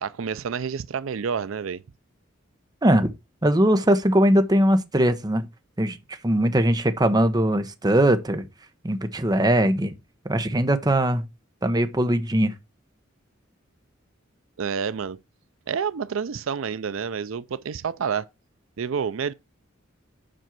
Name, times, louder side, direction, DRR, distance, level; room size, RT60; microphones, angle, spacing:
voice 1, 0.0-1.8 14.6-15.2 15.7-18.3 18.8-19.3, right 6 dB, 80° right, 0.5 m, -29 dB
voice 2, 3.4-5.5 5.8-6.0 6.2-8.5 8.8-9.9 10.2-11.2 11.6-12.5, right 1 dB, 20° right, 1.0 m, -20 dB
7.6 x 5.4 x 5.9 m
head